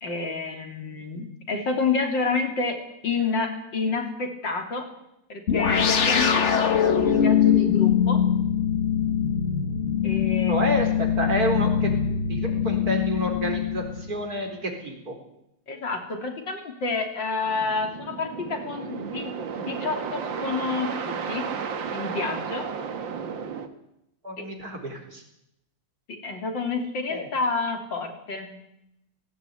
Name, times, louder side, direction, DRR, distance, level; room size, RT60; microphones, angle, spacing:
voice 1, 0.0-2.8 3.0-4.8 5.3-8.2 10.0-10.9 15.7-21.5 21.9-22.7 24.4-24.5 26.2-28.6, left 4 dB, 85° left, 4 dB, 3.8 m, -29 dB
sound 1, 5.5-14.3, left 8 dB, 40° left, 1.5 m, -23 dB
voice 2, 10.5-11.9 12.3-15.2 24.2-25.2 27.1-27.3, equal, 55° right, 3 dB, 4.7 m, -29 dB
sound 2, 17.5-23.7, right 6 dB, 90° right, 2.2 m, -33 dB
17.5 x 17.5 x 9.5 m, 0.83 s
omnidirectional pair, 2.0 m